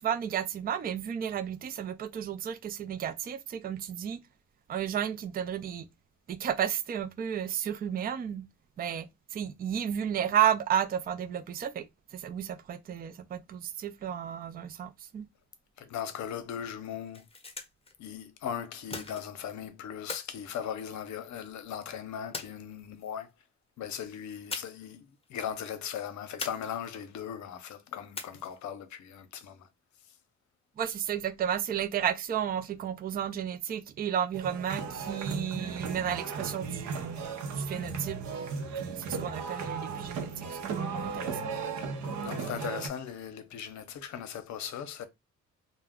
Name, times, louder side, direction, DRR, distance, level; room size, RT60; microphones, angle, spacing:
voice 1, 0.0-4.2 4.7-5.9 6.3-8.5 8.8-11.9 12.1-15.3 30.8-37.2 37.5-38.2 38.8-41.4, right 9 dB, 30° right, 0.4 m, -32 dB
voice 2, 15.8-17.3 18.0-23.3 23.8-29.7 42.2-45.1, left 8 dB, 70° left, 0.7 m, -38 dB
sound 1, 17.0-17.9 18.9-19.5 20.1-21.3 22.3-23.1 24.5-25.0 25.2-25.3 26.4-27.1 28.1-28.7, left 3 dB, 20° left, 0.7 m, -41 dB
sound 2, 34.3-42.9, right 4 dB, 70° right, 0.7 m, -36 dB
2.3 x 2.1 x 3.5 m
cardioid pair, 90°, 30 cm